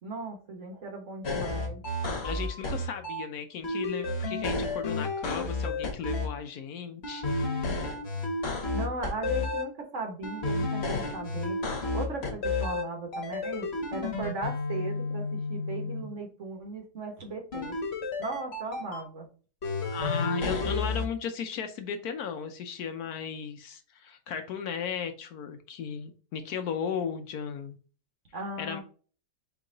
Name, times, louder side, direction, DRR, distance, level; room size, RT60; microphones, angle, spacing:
voice 1, 0.0-1.8 8.7-11.6 11.9-17.8 18.2-19.3 28.3-28.8, right 3 dB, 50° right, 3 dB, 1.3 m, -37 dB
sound 1, 1.2-3.2 3.6-6.3 7.0-9.6 10.2-12.8 13.1-16.0 17.5-19.0 19.6-21.1, left 3 dB, 40° left, 1.2 m, -31 dB
voice 2, 2.2-7.5 19.9-27.8 28.6-28.8, left 7 dB, 70° left, 7 dB, 1.1 m, -35 dB
4.5 x 3.0 x 3.7 m, 0.39 s
omnidirectional pair, 1.8 m